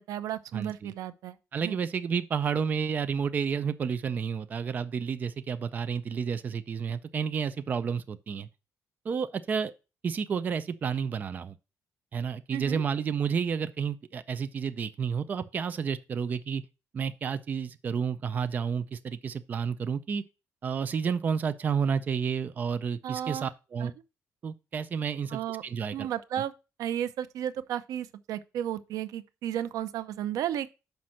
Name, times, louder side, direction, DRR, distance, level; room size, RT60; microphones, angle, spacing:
voice 1, 0.0-1.4 1.6-1.7 12.5-12.8 23.0-23.5 23.8-23.9 25.3-25.6 25.9-26.5 26.8-30.7, right 10 dB, 85° right, 0.6 m, -33 dB
voice 2, 0.5-0.9 1.5-8.5 9.1-9.7 10.0-11.6 12.1-16.6 16.9-20.2 20.6-23.9 24.4-26.1, right 6 dB, 30° right, 0.4 m, -31 dB
5.8 x 5.3 x 6.2 m
cardioid pair, 180°, 6 cm